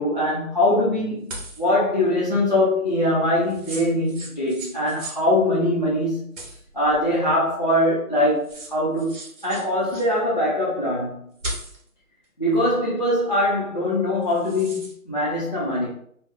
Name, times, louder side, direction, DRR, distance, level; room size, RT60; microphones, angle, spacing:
voice 1, 0.0-6.3 6.7-11.2 12.4-15.9, left 1 dB, 30° left, -8 dB, 0.4 m, -22 dB
sound 1, 1.3-1.7 3.5-5.2 6.4-7.1 8.1-8.2 8.4-10.1 11.4-11.9 14.2-14.9, right 1 dB, 60° right, 1.0 m, -37 dB
2.7 x 2.3 x 3.1 m, 0.66 s
figure-of-eight pair, 145°, 44 cm